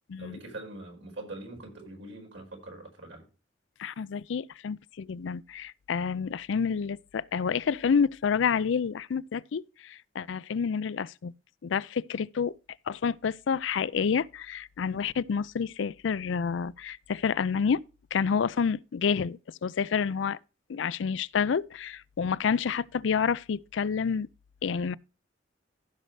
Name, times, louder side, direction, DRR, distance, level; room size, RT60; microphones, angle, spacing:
voice 1, 0.2-3.3, right 2 dB, 80° right, 5.0 m, -43 dB
voice 2, 3.8-11.3 11.6-12.6 12.9-17.8 18.1-20.4 20.7-24.3 24.6-24.9, left 6 dB, 70° left, 0.4 m, -29 dB
15.0 x 6.5 x 3.2 m
head